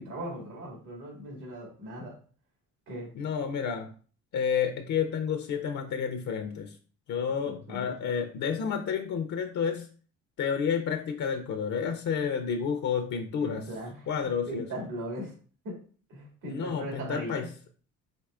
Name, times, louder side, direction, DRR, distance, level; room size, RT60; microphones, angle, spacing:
voice 1, 0.0-2.1 2.9-3.2 7.3-7.9 13.4-14.1 14.4-15.3 15.6-15.8 16.1-17.5, equal, 85° right, -2 dB, 2.2 m, -38 dB
voice 2, 3.2-3.9 4.3-6.8 7.1-9.9 10.4-13.6 14.1-14.6 16.4-17.5, left 7 dB, 70° left, 5 dB, 0.6 m, -30 dB
4.5 x 4.1 x 2.4 m, 0.41 s
cardioid pair, 90°, 30 cm